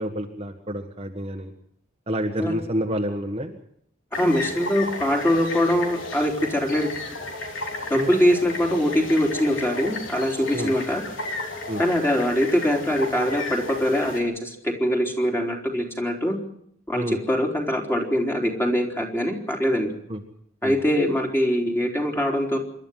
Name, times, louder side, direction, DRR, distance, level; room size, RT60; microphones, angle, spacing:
voice 1, 0.0-1.5 2.1-3.5 8.0-8.1 10.5-10.7 11.7-11.8 16.9-17.2 20.1-20.2 20.6-20.7, equal, 30° right, 3 dB, 1.6 m, -28 dB
sound 1, 4.1-14.2, left 2 dB, 70° left, 3.7 m, -33 dB
voice 2, 4.1-6.9 7.9-11.0 11.8-16.4 16.9-19.9 20.6-22.6, equal, 10° left, 1 dB, 3.7 m, -23 dB
27.0 x 12.0 x 9.2 m, 0.69 s
head